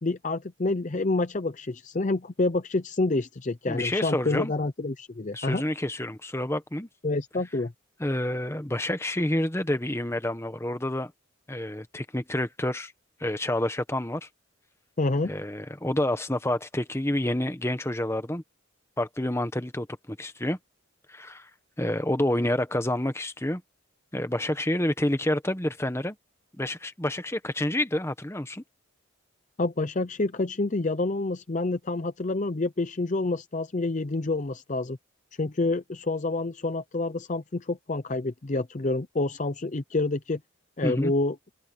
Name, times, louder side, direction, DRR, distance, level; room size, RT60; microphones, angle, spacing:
voice 1, 0.0-5.6 7.0-7.7 15.0-15.3 29.6-35.0 35.4-40.4 40.8-41.4, left 2 dB, 35° left, 0.6 m, -28 dB
voice 2, 3.7-4.5 5.3-6.9 8.0-11.1 11.5-12.9 13.2-14.3 15.2-18.4 19.0-20.6 21.1-21.5 21.8-23.6 24.1-26.2 26.6-28.6 40.8-41.1, left 1 dB, 10° left, 1.1 m, -28 dB
open air
head